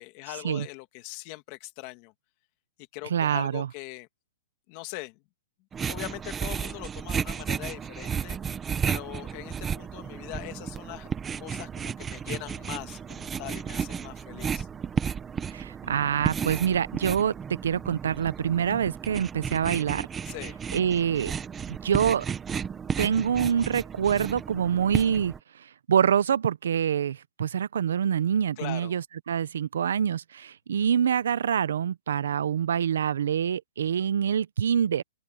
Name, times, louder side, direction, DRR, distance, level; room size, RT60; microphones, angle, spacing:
voice 1, 0.0-2.1 2.9-4.1 4.7-5.2 5.9-8.4 8.8-11.1 11.4-14.7 20.2-20.6 28.6-29.0, left 21 dB, 25° left, 2.0 m, -41 dB
voice 2, 3.1-3.7 15.5-20.1 20.7-21.3 21.7-22.3 23.0-35.0, right 8 dB, 70° right, 0.7 m, -26 dB
sound 1, 5.7-25.4, right 7 dB, 10° right, 0.8 m, -33 dB
open air
hypercardioid pair, 175°, 0 cm